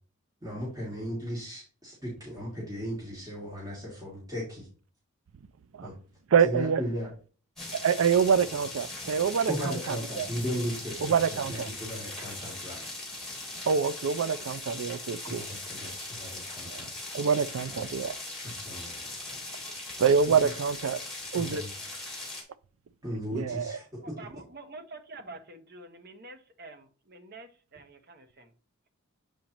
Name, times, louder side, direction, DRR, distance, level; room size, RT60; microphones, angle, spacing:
voice 1, 0.4-4.7 5.8-5.9 6.4-7.1 9.5-13.0 15.3-16.9 17.7-17.8 18.4-18.9 20.4-20.5 21.3-21.7 23.0-24.1, equal, 15° right, 2.3 m, -36 dB
voice 2, 6.3-6.8 7.7-10.3 11.0-11.7 13.7-15.4 16.7-16.8 17.1-18.2 20.0-21.0 21.3-21.6 23.3-23.8, right 6 dB, 65° right, 0.4 m, -26 dB
sound 1, 7.6-22.4, left 2 dB, ahead, 2.1 m, -40 dB
voice 3, 24.0-28.5, right 2 dB, 45° right, 1.0 m, -47 dB
7.3 x 5.1 x 2.9 m
head